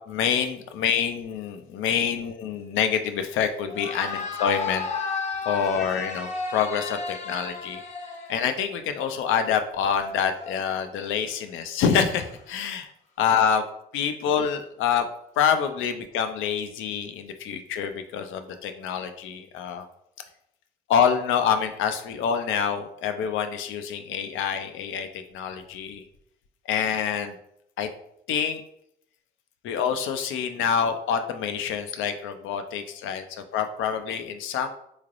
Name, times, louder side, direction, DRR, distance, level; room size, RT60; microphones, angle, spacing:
voice 1, 0.1-4.9 5.5-7.8 8.3-12.9 13.2-13.6 13.9-15.1 15.4-19.9 20.9-26.0 26.7-27.4 27.8-27.9 28.3-28.6 29.6-34.7, left 7 dB, 85° left, 8 dB, 0.4 m, -26 dB
sound 1, 3.6-8.8 9.8-11.0 12.0-12.4, left 4 dB, 35° left, 0.6 m, -34 dB
3.8 x 3.2 x 2.4 m, 0.75 s
cardioid pair, 90°, 20 cm